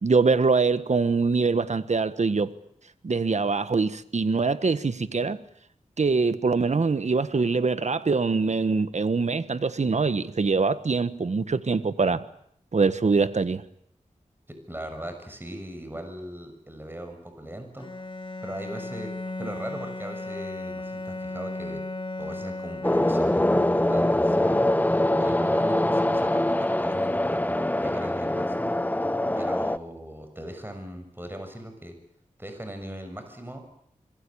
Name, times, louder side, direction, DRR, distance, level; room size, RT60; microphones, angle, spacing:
voice 1, 0.0-2.5 3.0-5.4 6.0-12.2 12.7-13.6, right 4 dB, 60° right, 1.5 m, -23 dB
voice 2, 14.5-17.9 18.4-19.1 19.4-21.8 22.2-24.6 25.1-28.7 29.3-31.9 32.4-33.6, right 1 dB, 15° right, 6.5 m, -39 dB
Bowed string instrument, 17.8-23.6, left 2 dB, 40° left, 3.8 m, -36 dB
sound 1, 22.8-29.8, left 1 dB, 10° left, 1.0 m, -23 dB
26.5 x 22.0 x 8.7 m
wide cardioid pair, 55°, 13 cm